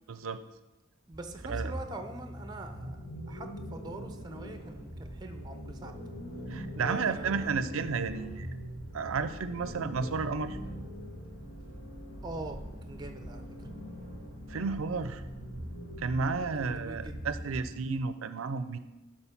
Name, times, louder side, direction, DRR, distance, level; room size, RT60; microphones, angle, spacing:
voice 1, 0.1-0.4 1.5-1.7 6.5-8.5 8.9-10.6 14.5-15.2 16.0-18.8, right 5 dB, 85° right, 12 dB, 0.5 m, -32 dB
sound 1, 1.1-18.0, equal, 85° left, 2.7 m, -42 dB
voice 2, 1.1-5.9 6.7-7.5 12.2-12.6 12.8-13.4 16.6-17.3, right 2 dB, 20° right, 6 dB, 0.7 m, -43 dB
11.5 x 4.4 x 5.8 m, 1.1 s
head